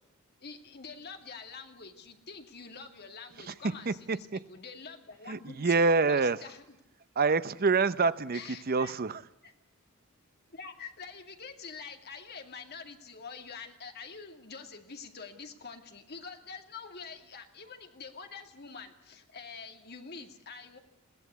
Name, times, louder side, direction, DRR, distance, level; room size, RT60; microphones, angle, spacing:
voice 1, 0.4-6.6 8.3-9.0 9.4-9.5 10.5-20.8, left 5 dB, 50° left, 5 dB, 2.3 m, -46 dB
voice 2, 3.4-4.4 5.3-6.4 7.2-8.4 8.7-9.2, right 4 dB, 45° right, 15 dB, 0.7 m, -27 dB
21.5 x 16.0 x 8.2 m, 0.86 s
head